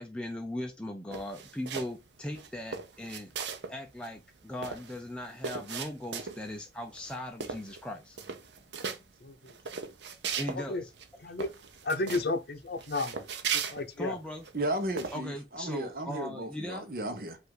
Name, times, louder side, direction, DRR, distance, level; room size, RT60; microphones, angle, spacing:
voice 1, 0.0-3.3 3.7-8.2 10.4-10.9 14.0-14.5 15.1-16.9, left 1 dB, 5° left, 0.5 m, -39 dB
sound 1, 1.1-2.0 2.3-3.8 4.0-4.1 4.4-6.6 7.0-7.2 7.4-7.9 8.1-9.0 9.5-10.6 11.0-11.1 11.4-12.3 12.8-14.5 15.0-15.2, right 6 dB, 80° right, 0.7 m, -37 dB
voice 2, 9.2-9.5 10.5-10.8 11.2-11.5 11.8-13.1 13.5-14.2, left 2 dB, 60° left, 0.7 m, -32 dB
voice 3, 14.5-17.4, right 1 dB, 55° right, 1.0 m, -34 dB
5.4 x 2.6 x 3.8 m
head